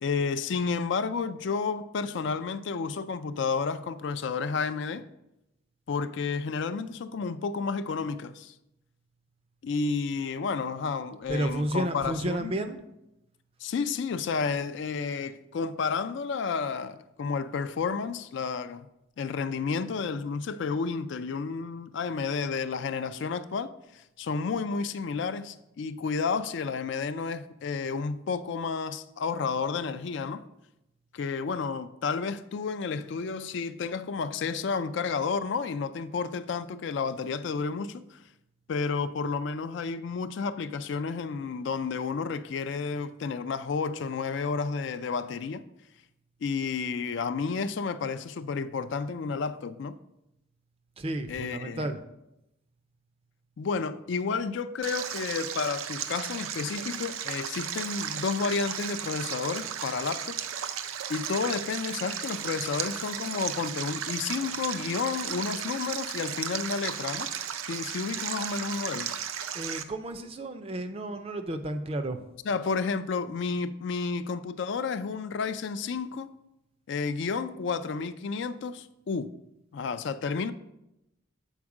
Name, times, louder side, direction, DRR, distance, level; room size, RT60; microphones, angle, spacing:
voice 1, 0.0-5.1 5.9-8.5 9.6-12.5 13.6-18.9 19.2-30.4 31.1-38.2 38.7-45.7 46.4-50.0 51.3-51.9 53.6-60.4 61.1-67.3 67.7-69.1 72.5-76.3 76.9-79.3 79.7-80.5, left 5 dB, 60° left, 0.3 m, -31 dB
voice 2, 11.3-12.8 51.0-52.0 69.5-72.2, right 1 dB, 30° right, 0.4 m, -32 dB
Stream, 54.8-69.8, right 8 dB, 85° right, 0.5 m, -35 dB
7.3 x 4.4 x 4.8 m
head